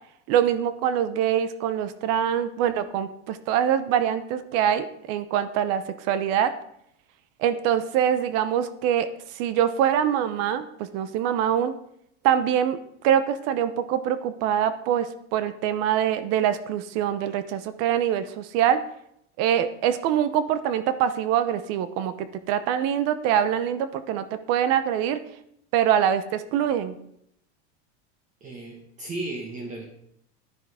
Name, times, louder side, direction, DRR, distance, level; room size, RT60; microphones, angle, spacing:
voice 1, 0.3-6.5 7.4-11.7 12.2-12.8 13.0-18.8 19.4-25.2 25.7-27.0, right 9 dB, 45° right, 13 dB, 0.8 m, -24 dB
voice 2, 28.4-29.8, right 2 dB, 20° right, 1 dB, 1.5 m, -35 dB
10.5 x 10.5 x 4.9 m, 0.74 s
supercardioid pair, 170°, 33 cm